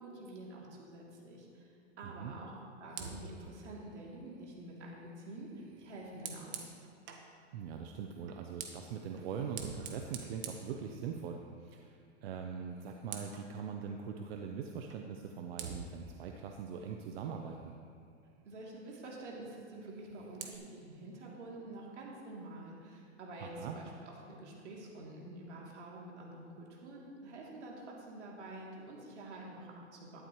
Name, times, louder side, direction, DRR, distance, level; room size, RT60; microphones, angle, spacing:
voice 1, 0.0-6.6 18.4-30.2, right 2 dB, 85° right, -3 dB, 3.1 m, -48 dB
voice 2, 2.0-2.3 7.5-17.7 23.4-23.8, right 6 dB, 60° right, 3 dB, 0.9 m, -42 dB
Fire, 2.9-7.3 8.2-11.5 11.8-12.1 12.4-13.5 14.9-15.0 15.6-17.9 19.8-20.6, right 6 dB, 35° right, 1.3 m, -49 dB
13.0 x 11.5 x 3.1 m, 2.5 s
hypercardioid pair, 125°, 34 cm